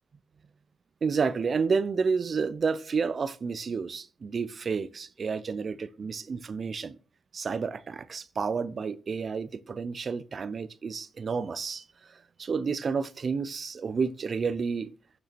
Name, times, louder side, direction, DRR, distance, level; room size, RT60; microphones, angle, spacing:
voice 1, 1.0-7.0 7.3-11.8 12.1-14.9, right 5 dB, 35° right, 0.6 m, -30 dB
12.5 x 6.1 x 4.3 m
wide cardioid pair, 150°, 0 cm